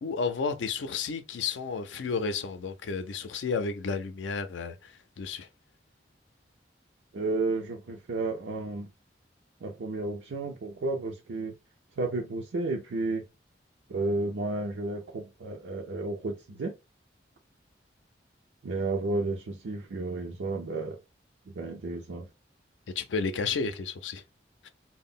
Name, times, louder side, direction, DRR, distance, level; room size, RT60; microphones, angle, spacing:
voice 1, 0.0-5.5 23.0-24.2 24.6-24.7, left 5 dB, 90° left, 0.4 m, -32 dB
voice 2, 7.1-8.9 9.6-11.5 12.0-13.3 13.9-16.7 18.6-21.0 21.5-22.3, right 2 dB, 90° right, 0.5 m, -32 dB
2.1 x 2.0 x 3.5 m
head